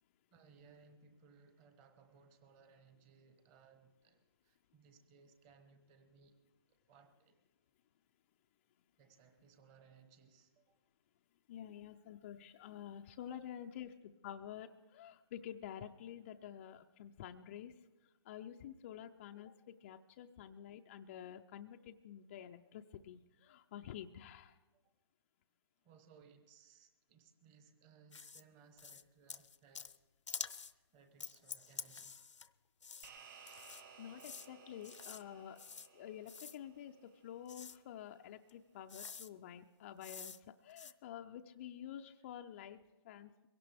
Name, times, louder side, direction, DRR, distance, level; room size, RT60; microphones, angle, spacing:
voice 1, 0.3-6.4 6.9-7.4 9.0-10.8 13.3-13.8 25.8-29.9 30.7-32.2, right 5 dB, 20° right, 8 dB, 1.2 m, -64 dB
voice 2, 11.5-13.9 14.2-17.8 18.3-24.6 34.0-35.6 35.9-37.0 37.2-40.4 40.6-43.5, left 10 dB, 25° left, 5 dB, 0.4 m, -49 dB
sound 1, 28.1-28.4 28.8-29.0 29.3-30.0 30.3-30.7 31.2-32.5 32.8-33.1 33.5-33.8 34.2-34.5 34.8-35.2 35.6-35.9 36.3-36.6 37.5-37.8 38.5-38.6 38.9-39.3 40.0-40.4 40.7-40.9, left 6 dB, 85° left, 0.7 m, -48 dB
sound 2, 33.0-37.7, right 6 dB, 40° right, 2.2 m, -59 dB
22.5 x 17.0 x 3.4 m, 1.2 s
hypercardioid pair, 150°, 15 cm